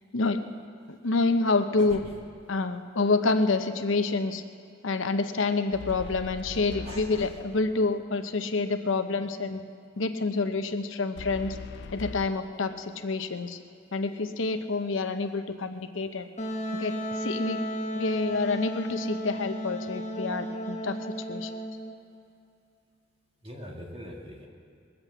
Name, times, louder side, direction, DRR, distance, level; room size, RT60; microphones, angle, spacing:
voice 1, 0.9-2.0 2.5-4.4 4.8-9.6 10.0-11.6 11.9-13.6 13.9-16.3 16.7-17.6 17.9-21.5, left 3 dB, 75° left, 8 dB, 0.8 m, -28 dB
sound 1, 1.9-2.5 5.7-7.8 11.2-12.3, left 5 dB, 55° left, 0.4 m, -41 dB
voice 2, 6.8-7.3 23.4-24.5, equal, 30° right, -2 dB, 2.5 m, -42 dB
Wind instrument woodwind instrument, 16.4-21.9, equal, 35° left, 1.3 m, -34 dB
21.0 x 8.0 x 8.0 m, 2.4 s
head